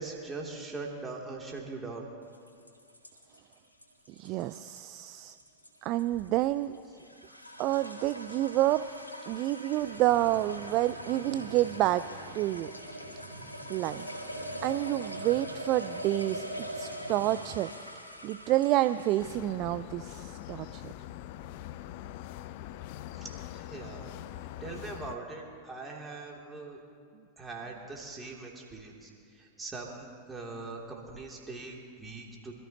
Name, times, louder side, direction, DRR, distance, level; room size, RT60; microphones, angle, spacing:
voice 1, 0.0-2.1 4.3-4.4 23.1-24.1 24.6-26.8 27.4-32.5, right 3 dB, 15° right, -2 dB, 2.8 m, -41 dB
sound 1, 2.3-19.5, equal, 85° left, 1.7 m, -43 dB
voice 2, 4.1-5.4 5.8-6.7 7.6-8.8 9.3-12.0 12.3-12.7 13.7-14.1 14.6-16.5 16.8-17.7 18.2-20.9, right 15 dB, 40° right, 12 dB, 0.4 m, -28 dB
sound 2, 9.7-17.5, right 3 dB, 80° right, 2.0 m, -47 dB
sound 3, 19.2-25.2, left 13 dB, 50° left, 0.5 m, -43 dB
25.5 x 14.0 x 2.9 m, 2.3 s
figure-of-eight pair, 90°, 0 cm